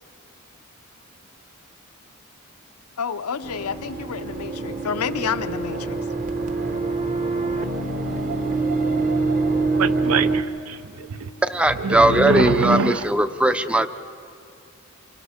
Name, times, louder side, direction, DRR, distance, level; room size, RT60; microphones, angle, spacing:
voice 1, 3.0-6.0, left 6 dB, 80° left, 0.6 m, -29 dB
sound 1, 3.4-10.4, right 3 dB, 35° right, 1.2 m, -25 dB
voice 2, 9.8-11.3 11.7-13.1, right 4 dB, 70° right, 0.6 m, -24 dB
voice 3, 11.5-13.9, right 1 dB, 5° right, 0.5 m, -19 dB
27.0 x 24.5 x 5.0 m
head